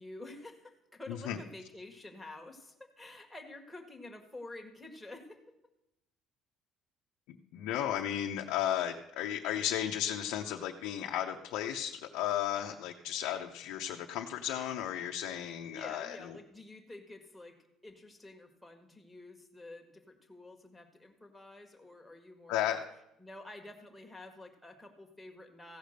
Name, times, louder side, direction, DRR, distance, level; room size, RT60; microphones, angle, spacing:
voice 1, 0.0-5.4 15.6-22.8 23.2-25.8, left 2 dB, 5° left, 2 dB, 1.5 m, -49 dB
voice 2, 7.3-16.2 22.5-22.8, left 11 dB, 80° left, 2 dB, 0.7 m, -34 dB
15.5 x 5.1 x 6.5 m, 0.86 s
cardioid pair, 140°, 0 cm